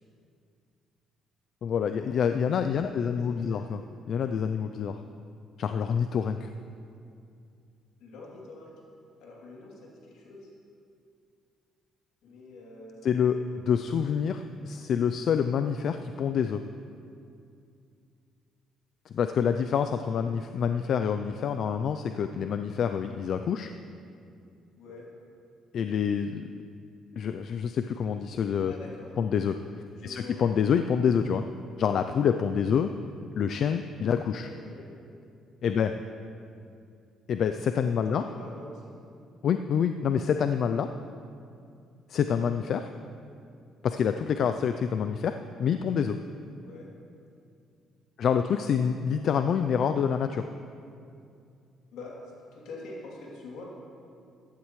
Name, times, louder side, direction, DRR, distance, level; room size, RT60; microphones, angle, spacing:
voice 1, 1.6-3.8 4.1-5.0 5.6-6.5 13.0-16.6 19.1-23.7 25.7-26.5 27.2-28.7 29.2-29.6 30.0-31.4 31.8-32.9 33.4-34.5 35.6-35.9 37.3-38.2 39.4-40.9 42.1-42.9 43.8-46.2 48.2-50.5, left 7 dB, 60° left, 8 dB, 0.4 m, -27 dB
voice 2, 2.7-3.6 8.0-8.7 9.2-10.5 12.2-13.0 13.5-13.6 19.4-19.5 24.8-25.1 28.7-29.1 29.9-30.4 32.6-32.8 34.0-34.9 35.6-35.8 37.8-38.9 46.6-46.9 51.9-53.6, left 2 dB, 85° left, -3 dB, 2.9 m, -46 dB
15.0 x 11.5 x 3.2 m, 2.4 s
cardioid pair, 100°, 0 cm